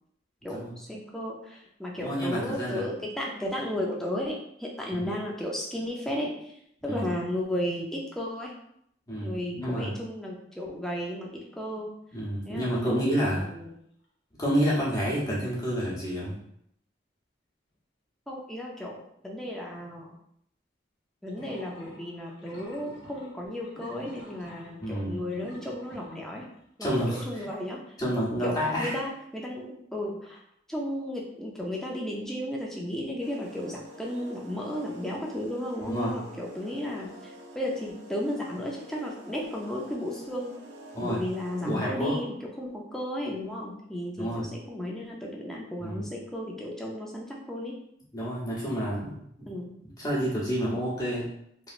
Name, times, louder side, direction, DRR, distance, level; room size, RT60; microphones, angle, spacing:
voice 1, 0.4-6.5 6.8-8.5 9.2-11.9 12.5-13.7 18.3-20.1 21.2-26.5 26.8-28.0 28.4-30.4 30.7-40.5 41.0-47.8 49.5-49.7, left 1 dB, 5° left, -2 dB, 0.4 m, -34 dB
voice 2, 2.0-2.8 4.9-5.0 6.9-7.1 9.1-9.9 12.1-13.5 14.4-16.3 24.8-25.2 26.8-27.5 28.0-28.9 35.8-36.1 40.9-41.2 41.6-42.1 44.2-44.4 45.8-46.1 48.1-49.5 50.0-51.2, equal, 20° left, -7 dB, 0.9 m, -29 dB
sound 1, 13.5-13.6 14.0-14.1 21.3-26.6, equal, 70° left, 0.9 m, -48 dB
sound 2, 33.2-42.0, equal, 70° right, 0.6 m, -47 dB
3.0 x 2.7 x 2.5 m, 0.72 s
head